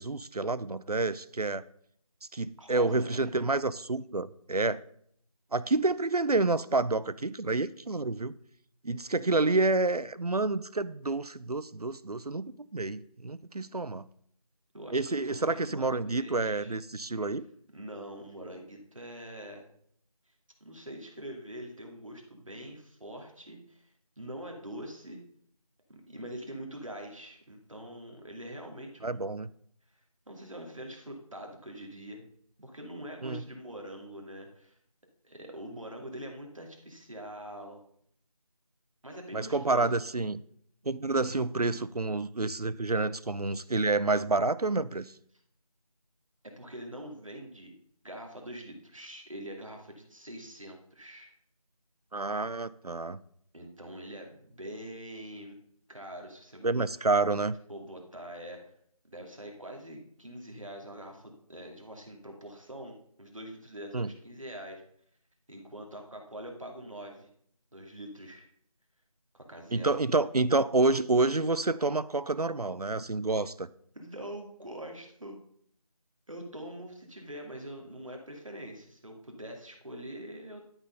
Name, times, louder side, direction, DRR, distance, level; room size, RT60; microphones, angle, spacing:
voice 1, 0.0-1.6 2.3-4.8 5.5-8.3 8.8-14.1 14.9-17.5 29.0-29.5 33.2-33.4 39.3-40.4 40.9-45.1 52.1-53.2 56.6-57.6 63.9-64.1 69.7-73.7, right 3 dB, 90° right, 17 dB, 0.6 m, -28 dB
voice 2, 2.6-3.3 14.7-16.8 17.7-19.7 20.6-25.2 26.1-29.2 30.3-32.2 32.6-34.7 35.2-37.8 39.0-40.0 46.4-47.7 48.0-51.3 53.5-55.6 55.9-56.7 57.7-58.6 59.1-64.8 65.5-67.3 67.7-68.5 69.3-70.0 73.9-75.4 76.3-80.6, right 1 dB, 60° right, 2 dB, 2.4 m, -44 dB
12.0 x 4.5 x 5.5 m, 0.66 s
figure-of-eight pair, 170°, 19 cm